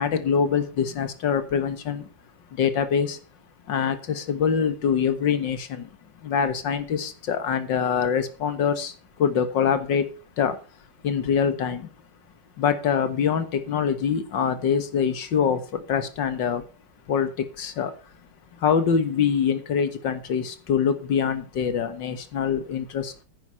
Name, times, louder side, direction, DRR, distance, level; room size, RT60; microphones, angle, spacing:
voice 1, 0.0-2.1 2.5-3.2 3.7-5.9 6.2-10.1 10.4-10.6 11.0-11.9 12.6-16.6 17.1-17.9 18.5-23.2, left 7 dB, 75° left, 2.1 m, -24 dB
10.0 x 9.7 x 5.6 m
omnidirectional pair, 2.0 m